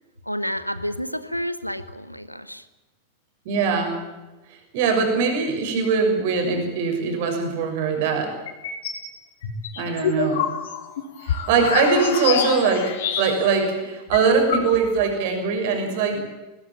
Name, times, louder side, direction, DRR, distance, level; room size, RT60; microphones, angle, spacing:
voice 1, 0.2-2.6 11.6-12.4, equal, 90° left, 13 dB, 1.4 m, -30 dB
voice 2, 3.4-4.0 4.5-8.4 9.8-10.5 11.2-16.2, right 5 dB, 50° right, 4 dB, 6.4 m, -22 dB
sound 1, 8.5-9.0 9.4-13.6 13.9-14.0 14.1-15.1, left 8 dB, 60° left, 3.8 m, -27 dB
21.5 x 21.0 x 7.6 m, 1.1 s
figure-of-eight pair, 90°, 0 cm